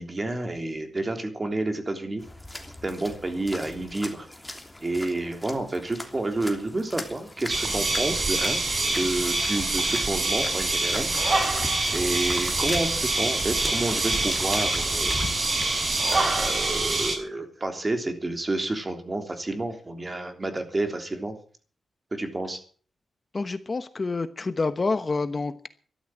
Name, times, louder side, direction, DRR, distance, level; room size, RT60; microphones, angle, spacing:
voice 1, 0.0-2.2 2.8-4.3 4.8-8.6 8.9-11.6 11.9-15.2 16.1-21.3 22.1-22.6, right 2 dB, 25° right, 6 dB, 3.4 m, -30 dB
sound 1, 2.2-16.2, left 1 dB, 10° left, 3.2 m, -39 dB
sound 2, 7.5-17.2, right 2 dB, 45° right, 5.4 m, -25 dB
voice 2, 23.3-25.7, left 3 dB, 35° left, 11 dB, 1.1 m, -28 dB
13.5 x 12.0 x 7.6 m, 0.43 s
wide cardioid pair, 95°, 0 cm